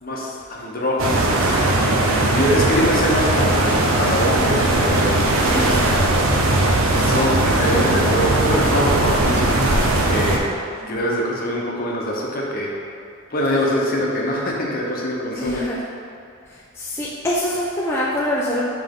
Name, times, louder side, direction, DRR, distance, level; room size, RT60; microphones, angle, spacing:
voice 1, 0.0-1.6 2.3-5.8 7.0-10.4 10.9-12.7 13.3-15.6, equal, 40° left, -3 dB, 0.9 m, -24 dB
sound 1, 1.0-10.4, right 2 dB, 70° right, 0.7 m, -18 dB
voice 2, 5.4-5.9 10.8-11.0 15.4-15.8 16.5-18.7, left 1 dB, 10° left, -7 dB, 0.5 m, -25 dB
5.6 x 5.0 x 3.7 m, 2.4 s
head